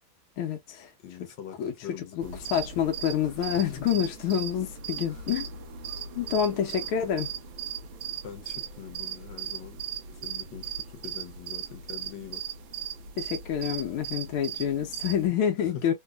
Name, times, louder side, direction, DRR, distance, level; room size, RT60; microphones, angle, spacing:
voice 1, 0.4-0.9 1.6-1.7 2.2-2.3 2.5-5.5 6.2-7.3 13.2-15.9, left 9 dB, 90° left, 1.7 m, -27 dB
voice 2, 1.0-2.5 3.2-3.5 5.1-5.3 8.2-9.8 10.1-12.4 15.6-15.9, left 9 dB, 70° left, 1.4 m, -44 dB
sound 1, 2.2-15.3, right 8 dB, 75° right, 1.4 m, -38 dB
4.1 x 2.7 x 2.3 m
omnidirectional pair, 2.2 m